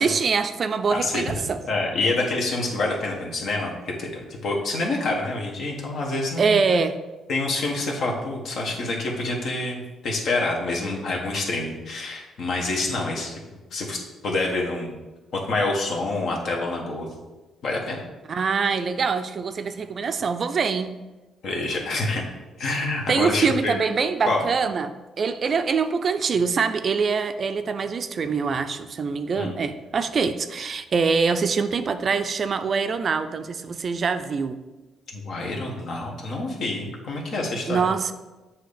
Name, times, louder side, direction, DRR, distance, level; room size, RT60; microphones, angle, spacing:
voice 1, 0.0-1.6 6.4-7.0 18.3-20.9 23.1-34.6 37.7-38.1, right 5 dB, 45° right, 9 dB, 0.4 m, -24 dB
voice 2, 0.9-1.3 1.7-4.1 4.4-6.6 7.3-13.4 13.7-15.0 15.3-17.1 17.6-18.0 21.4-22.2 22.6-23.8 24.3-24.4 29.4-29.6 35.1-37.9, left 2 dB, 65° left, -1 dB, 1.4 m, -27 dB
7.6 x 2.9 x 5.0 m, 1.1 s
cardioid pair, 90°, 0 cm